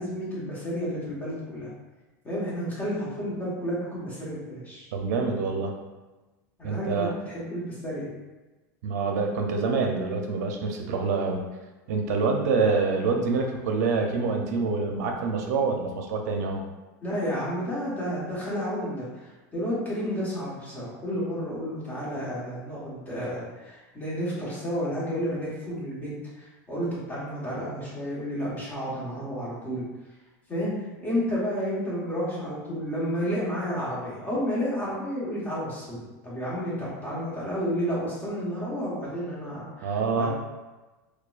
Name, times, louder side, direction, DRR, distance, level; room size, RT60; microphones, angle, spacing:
voice 1, 0.0-1.7 2.2-4.9 6.6-8.1 17.0-19.3 19.5-29.8 30.5-30.7 31.0-40.3, equal, 20° left, -8 dB, 1.3 m, -31 dB
voice 2, 4.9-5.7 6.6-7.1 8.8-11.5 11.9-16.6 39.8-40.3, right 4 dB, 75° right, 3 dB, 0.5 m, -26 dB
4.5 x 2.2 x 2.4 m, 1.2 s
supercardioid pair, 140°, 9 cm